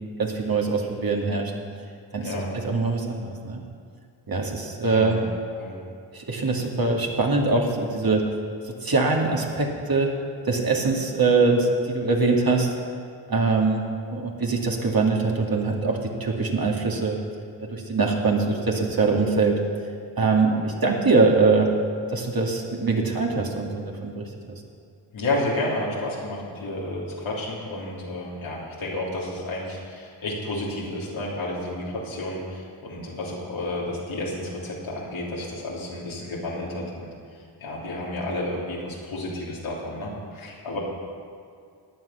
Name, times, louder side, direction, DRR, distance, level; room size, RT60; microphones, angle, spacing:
voice 1, 0.2-1.5 2.1-2.3 2.6-3.6 4.3-5.2 6.1-8.2 8.8-10.1 10.4-12.7 13.3-13.8 14.1-17.2 17.6-19.6 20.2-21.7 22.1-24.3, right 3 dB, 50° right, 0 dB, 2.5 m, -23 dB
voice 2, 4.8-5.2 5.6-5.8 25.1-37.1 37.6-40.8, left 1 dB, 85° left, -5 dB, 3.3 m, -31 dB
15.0 x 9.8 x 5.8 m, 2.3 s
supercardioid pair, 40°, 47 cm